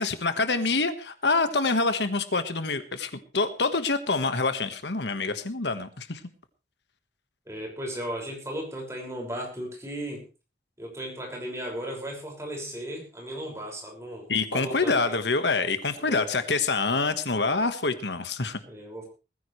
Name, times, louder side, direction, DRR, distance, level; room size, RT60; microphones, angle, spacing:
voice 1, 0.0-6.2 14.3-18.6, left 3 dB, 75° left, 10 dB, 1.5 m, -26 dB
voice 2, 7.5-10.2 10.8-14.3 14.5-15.1 16.0-16.3 18.7-19.0, equal, 15° right, 0 dB, 5.8 m, -36 dB
20.5 x 15.0 x 3.3 m, 0.32 s
head